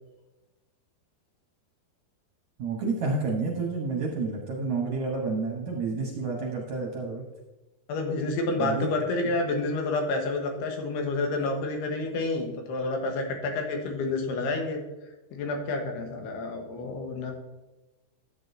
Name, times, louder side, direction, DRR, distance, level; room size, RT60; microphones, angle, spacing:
voice 1, 2.6-7.2 8.6-8.9, right 3 dB, 65° right, -1 dB, 1.9 m, -29 dB
voice 2, 7.9-14.8 15.3-17.3, left 2 dB, 85° left, 3 dB, 3.3 m, -29 dB
12.0 x 8.5 x 2.7 m, 1.0 s
omnidirectional pair, 4.6 m